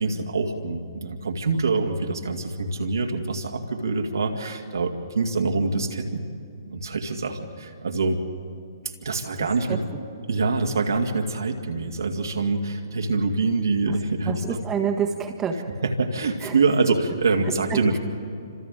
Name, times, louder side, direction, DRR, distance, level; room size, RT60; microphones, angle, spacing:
voice 1, 0.0-6.2 6.7-8.2 9.0-9.8 10.3-14.6 15.8-18.0, right 3 dB, 70° right, 2 dB, 2.3 m, -25 dB
voice 2, 9.4-9.8 14.2-15.6 16.4-16.5 17.7-17.8, right 7 dB, 15° right, 3 dB, 1.5 m, -28 dB
29.5 x 26.5 x 3.8 m, 2.5 s
figure-of-eight pair, 125°, 2 cm